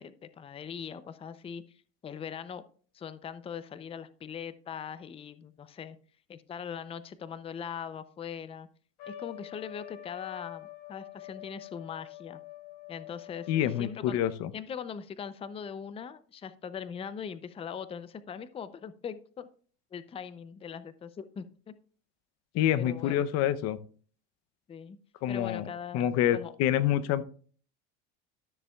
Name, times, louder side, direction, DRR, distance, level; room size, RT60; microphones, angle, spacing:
voice 1, 0.0-2.7 2.9-6.0 6.3-8.7 9.1-12.4 12.9-14.2 14.5-19.5 19.9-21.7 22.8-23.2 24.7-25.0 25.3-26.0 26.3-26.5, left 7 dB, 20° left, 14 dB, 0.5 m, -41 dB
Trumpet, 9.0-14.0, left 14 dB, 70° left, 3.3 m, -46 dB
voice 2, 13.5-14.5 22.5-23.8 25.2-25.6 25.9-27.2, left 11 dB, 55° left, 13 dB, 0.8 m, -27 dB
13.0 x 6.7 x 2.3 m, 0.42 s
supercardioid pair, 115°, 31 cm